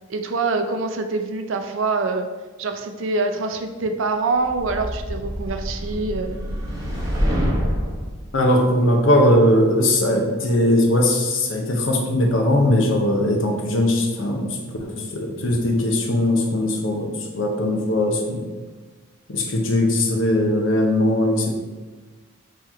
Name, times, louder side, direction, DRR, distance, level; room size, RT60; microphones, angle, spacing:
voice 1, 0.1-2.3 2.6-6.4, right 3 dB, 65° right, 6 dB, 0.4 m, -25 dB
sound 1, 4.4-8.1, equal, 15° right, 0.7 m, -26 dB
voice 2, 8.3-18.5 19.3-21.5, left 1 dB, 65° left, 2 dB, 0.7 m, -20 dB
3.8 x 3.1 x 4.3 m, 1.3 s
head